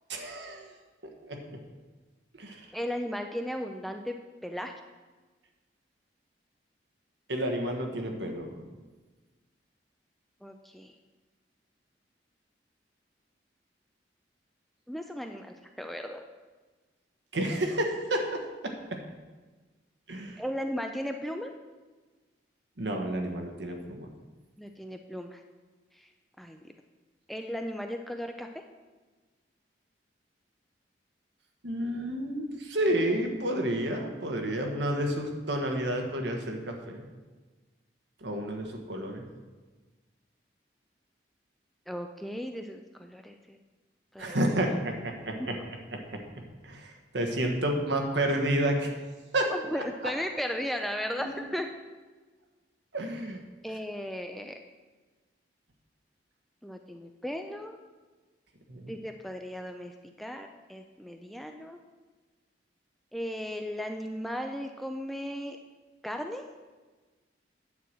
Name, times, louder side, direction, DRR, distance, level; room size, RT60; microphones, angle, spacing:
voice 1, 0.1-0.7 1.2-1.6 2.3-2.6 7.3-8.6 17.3-19.0 20.1-20.4 22.8-24.1 31.6-37.0 38.2-39.2 44.2-45.6 45.9-46.2 46.6-48.9 49.3-49.5 51.2-51.3 52.9-53.4 58.7-58.9, right 1 dB, 75° right, 3 dB, 1.4 m, -30 dB
voice 2, 2.7-4.7 10.4-10.9 14.9-16.2 20.4-21.5 24.6-25.4 25.9-26.1 26.4-26.6 27.3-28.6 41.9-43.6 44.1-44.4 45.4-45.6 49.5-51.7 53.6-54.6 56.6-57.8 58.9-61.8 63.1-65.6 66.0-66.5, equal, ahead, 4 dB, 0.4 m, -36 dB
9.4 x 4.7 x 7.4 m, 1.3 s
head